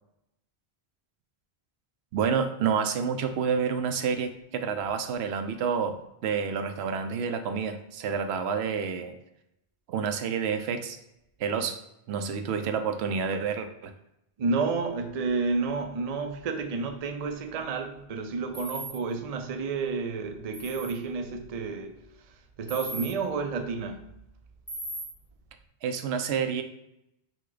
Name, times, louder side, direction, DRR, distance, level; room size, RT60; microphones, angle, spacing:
voice 1, 2.1-9.1 9.9-11.0 11.4-11.8 12.1-13.9 25.8-26.6, right 6 dB, 80° right, 0.8 m, -29 dB
voice 2, 14.4-22.0 22.6-24.1, right 4 dB, 45° right, 0.5 m, -30 dB
sound 1, 18.5-18.9 20.5-20.9 22.7-23.1 24.7-25.0, right 1 dB, 5° left, 1.1 m, -37 dB
6.0 x 2.3 x 3.9 m
omnidirectional pair, 1.1 m